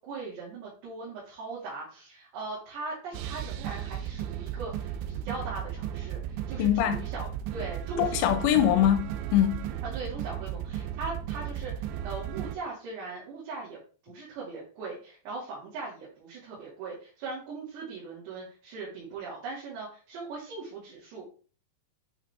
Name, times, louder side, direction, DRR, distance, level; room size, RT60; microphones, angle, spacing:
voice 1, 0.0-8.2 8.6-8.7 9.8-13.8 14.1-21.3, right 3 dB, 70° right, 4.4 m, -40 dB
sound 1, 3.1-12.6, right 10 dB, 90° right, 3.0 m, -35 dB
voice 2, 6.6-7.0 8.0-9.7, left 11 dB, 85° left, 3.0 m, -23 dB
8.5 x 5.1 x 3.5 m
omnidirectional pair, 5.1 m